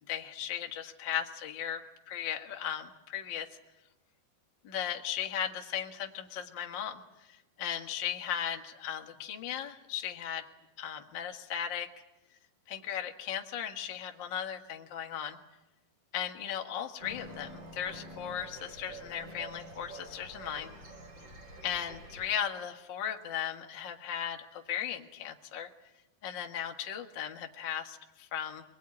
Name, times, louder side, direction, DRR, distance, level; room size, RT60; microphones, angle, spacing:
voice 1, 0.1-1.8 2.1-3.5 4.6-10.4 10.8-11.9 12.7-15.4 16.1-20.7 21.6-25.7 26.2-28.6, left 9 dB, 75° left, 3 dB, 1.0 m, -37 dB
sound 1, 17.0-22.3, right 1 dB, 30° right, 4.1 m, -48 dB
24.0 x 20.5 x 9.8 m, 0.99 s
omnidirectional pair, 4.9 m